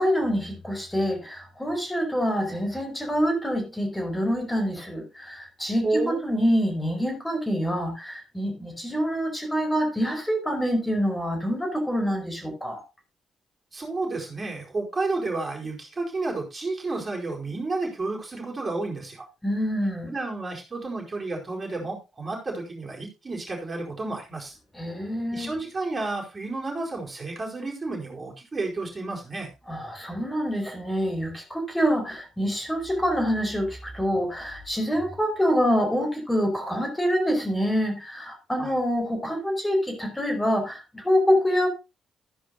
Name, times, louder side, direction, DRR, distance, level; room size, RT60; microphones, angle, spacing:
voice 1, 0.0-12.8 19.4-20.1 24.7-25.6 29.7-41.7, equal, 15° left, 4.7 m, -26 dB
voice 2, 5.8-6.2 13.7-19.3 20.1-24.5 25.3-29.5 38.6-38.7, right 3 dB, 35° right, 4.6 m, -31 dB
13.5 x 10.0 x 2.7 m
hypercardioid pair, 40°, 0 cm